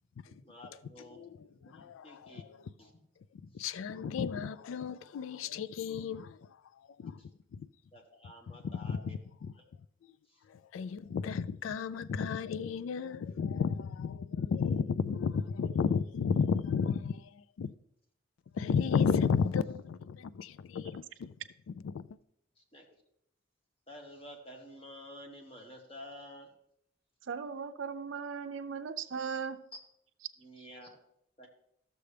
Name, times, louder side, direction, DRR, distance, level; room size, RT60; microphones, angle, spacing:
voice 1, 0.3-3.0 3.4-3.7 7.1-7.3 7.9-9.2 9.6-9.7 10.3-10.4 22.6-22.8 23.9-26.5 29.7-29.8 30.4-31.0 31.4-31.5, left 1 dB, 30° left, 1.3 m, -51 dB
voice 2, 1.7-2.6 3.5-6.4 7.0-7.2 7.5-7.7 8.8-9.5 10.5-17.7 18.5-21.3 21.8-22.2, left 6 dB, 85° left, 0.3 m, -33 dB
voice 3, 27.3-29.6, right 6 dB, 75° right, 0.5 m, -37 dB
13.0 x 6.8 x 3.3 m
head